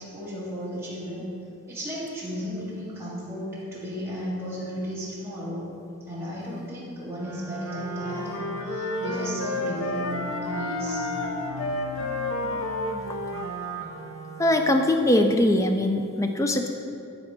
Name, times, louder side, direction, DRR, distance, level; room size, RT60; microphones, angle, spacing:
voice 1, 0.0-1.4 1.7-5.8 6.1-11.1 13.7-14.1, equal, 10° right, -9 dB, 1.9 m, -34 dB
Wind instrument woodwind instrument, 7.1-15.0, equal, 85° right, 1.2 m, -37 dB
sound 1, 7.7-13.1, equal, 55° right, 0.5 m, -43 dB
sound 2, 7.9-13.8, left 2 dB, 65° left, 0.6 m, -32 dB
voice 2, 14.4-16.7, left 1 dB, 15° left, 5 dB, 0.4 m, -21 dB
11.5 x 4.4 x 4.5 m, 2.5 s
head